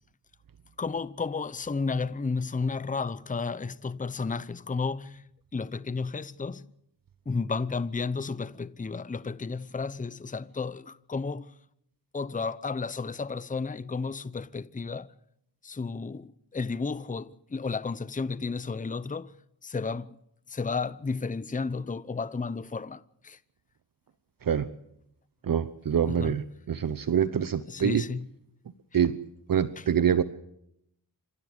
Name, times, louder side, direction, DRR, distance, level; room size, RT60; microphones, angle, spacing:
voice 1, 0.8-5.2 5.5-6.6 7.3-11.5 12.1-15.1 15.6-19.3 19.6-20.2 20.5-23.4 26.0-26.4 27.7-28.3 28.9-29.0 29.8-29.9, left 4 dB, 20° left, 0.8 m, -32 dB
voice 2, 25.4-28.0 28.9-29.2 29.5-30.2, right 8 dB, 55° right, 1.0 m, -25 dB
27.0 x 15.5 x 8.1 m
cardioid pair, 70°, 41 cm